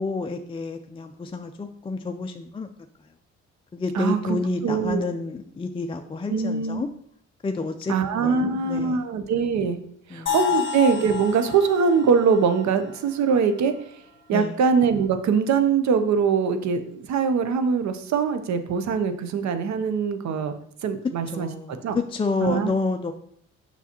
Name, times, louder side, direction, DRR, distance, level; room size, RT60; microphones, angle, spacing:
voice 1, 0.0-2.7 3.7-6.9 7.4-7.9 8.2-9.1 10.1-10.4 14.3-14.6 21.3-23.1, left 3 dB, 20° left, 5 dB, 0.4 m, -29 dB
voice 2, 3.9-4.4 4.6-5.0 6.3-6.8 7.9-9.8 10.1-13.7 14.3-20.5 20.8-21.5 21.8-22.0 22.4-22.7, right 6 dB, 65° right, 9 dB, 0.8 m, -22 dB
sound 1, 10.3-14.2, left 9 dB, 40° left, 1.6 m, -31 dB
7.1 x 5.6 x 2.9 m, 0.65 s
cardioid pair, 90°, 30 cm